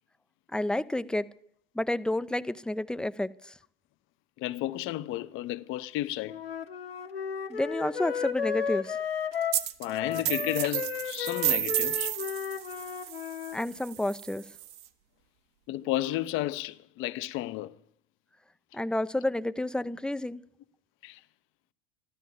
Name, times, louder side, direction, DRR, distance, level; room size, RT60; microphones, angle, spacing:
voice 1, 0.5-1.3 1.8-3.3 7.5-9.0 13.5-14.4 18.7-20.4, left 1 dB, 5° left, 0.6 m, -30 dB
voice 2, 4.4-6.4 9.8-12.1 15.7-17.7 21.0-21.2, left 15 dB, 45° left, 0.9 m, -32 dB
Wind instrument woodwind instrument, 6.3-13.6, left 7 dB, 90° left, 1.0 m, -34 dB
sound 1, 9.5-9.8 10.1-14.8, right 13 dB, 55° right, 1.3 m, -32 dB
14.5 x 13.0 x 7.1 m
hypercardioid pair, 85°, 29 cm